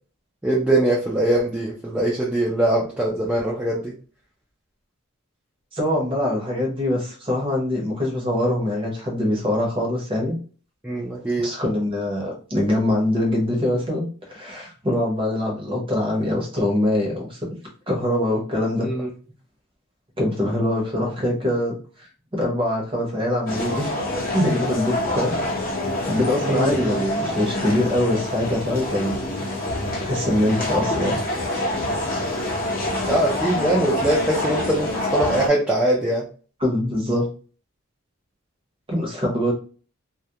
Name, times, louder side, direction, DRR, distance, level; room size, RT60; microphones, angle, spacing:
voice 1, 0.4-3.9 10.8-11.5 18.8-19.1 26.4-27.1 33.1-36.2, right 1 dB, 5° right, -6 dB, 0.4 m, -22 dB
voice 2, 5.7-10.4 11.4-17.4 17.9-18.9 20.2-22.1 22.3-23.9 24.3-25.3 26.1-29.2 30.0-31.2 36.6-37.3 38.9-39.5, left 1 dB, 25° right, -1 dB, 0.8 m, -23 dB
sound 1, 23.5-35.5, left 1 dB, 40° left, 0.6 m, -26 dB
2.3 x 2.1 x 2.7 m, 0.38 s
head